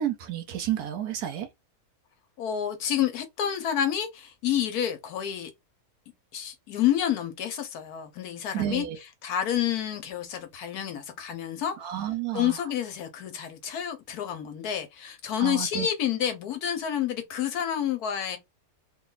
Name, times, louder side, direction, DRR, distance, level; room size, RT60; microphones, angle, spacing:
voice 1, 0.0-1.5 8.5-9.0 11.8-12.6 15.4-15.9, right 11 dB, 80° right, 1.2 m, -31 dB
voice 2, 2.4-5.5 6.3-8.8 9.2-12.0 12.3-18.4, left 10 dB, 75° left, 1.2 m, -29 dB
3.3 x 2.2 x 3.8 m
omnidirectional pair, 1.6 m